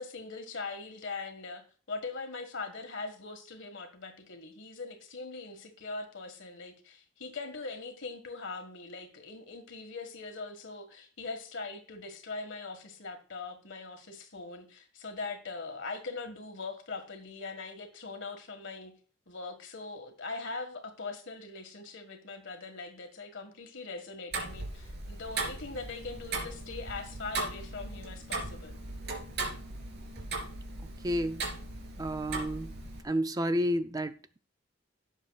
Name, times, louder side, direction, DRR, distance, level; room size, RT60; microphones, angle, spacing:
voice 1, 0.0-19.0 19.3-28.8, left 3 dB, 65° left, 1.8 m, -41 dB
Tick-tock, 24.3-33.0, right 3 dB, 55° right, 3.3 m, -38 dB
voice 2, 31.0-31.4 32.0-32.7 33.0-34.4, equal, 20° right, 0.4 m, -30 dB
17.0 x 7.3 x 2.4 m
head